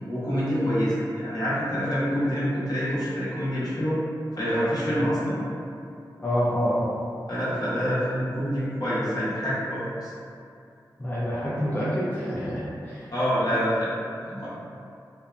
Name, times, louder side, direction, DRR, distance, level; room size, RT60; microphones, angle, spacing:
voice 1, 0.1-4.0 4.3-5.4 7.3-10.1 13.1-13.9 14.2-14.5, equal, 55° left, -10 dB, 0.9 m, -26 dB
voice 2, 6.2-6.9 11.0-13.1, equal, 20° left, -9 dB, 0.6 m, -27 dB
2.7 x 2.2 x 2.4 m, 2.5 s
cardioid pair, 50°, 8 cm